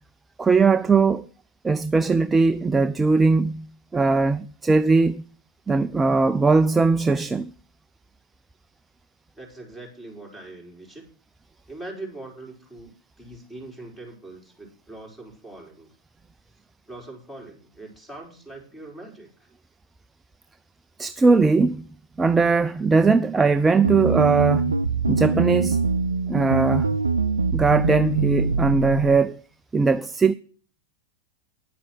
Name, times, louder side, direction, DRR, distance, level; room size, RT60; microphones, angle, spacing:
voice 1, 0.4-1.3 1.6-3.7 3.9-5.2 5.7-7.5 21.0-21.8 22.2-24.8 25.1-25.8 26.3-26.9 27.5-29.4 29.7-30.3, right 4 dB, 10° right, 0.4 m, -20 dB
voice 2, 9.4-11.1 11.7-12.9 13.2-15.9 16.9-19.3, right 2 dB, 10° left, 4.5 m, -41 dB
sound 1, 23.8-29.2, right 4 dB, 75° right, 0.4 m, -23 dB
10.0 x 8.4 x 6.2 m
figure-of-eight pair, 90°, 0 cm